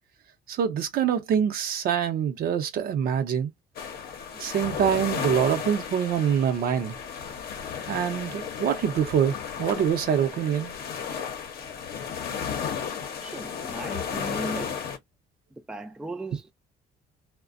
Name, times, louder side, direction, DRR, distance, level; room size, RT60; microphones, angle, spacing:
voice 1, 0.5-3.5 4.3-7.0 7.9-10.8, right 8 dB, 65° right, 0.7 m, -25 dB
sound 1, 3.8-15.0, left 7 dB, 65° left, 0.7 m, -34 dB
voice 2, 13.2-14.8 15.7-16.5, right 2 dB, 5° right, 0.4 m, -36 dB
2.5 x 2.2 x 2.4 m
cardioid pair, 110°, 17 cm